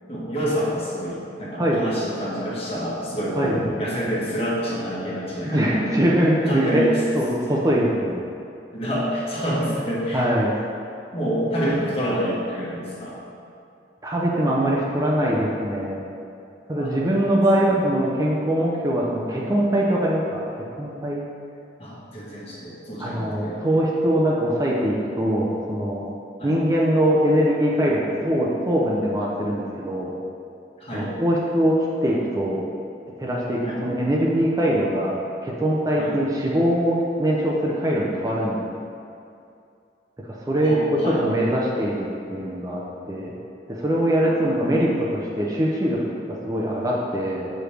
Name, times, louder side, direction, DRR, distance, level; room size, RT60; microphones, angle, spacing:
voice 1, 0.1-6.0 6.4-7.0 8.7-10.3 11.1-13.2 16.7-16.9 17.3-17.8 21.8-23.6 26.4-26.6 30.8-31.1 33.6-33.8 35.9-36.1 40.6-41.2, equal, 35° left, -7 dB, 1.5 m, -28 dB
voice 2, 5.4-8.2 10.1-10.5 14.0-16.0 16.7-20.4 20.8-21.3 23.0-26.1 26.4-30.1 30.9-32.6 33.2-35.1 35.4-38.6 40.4-42.8 43.1-43.3 43.7-47.5, right 1 dB, 20° right, -4 dB, 0.6 m, -22 dB
7.6 x 4.9 x 3.3 m, 2.6 s
head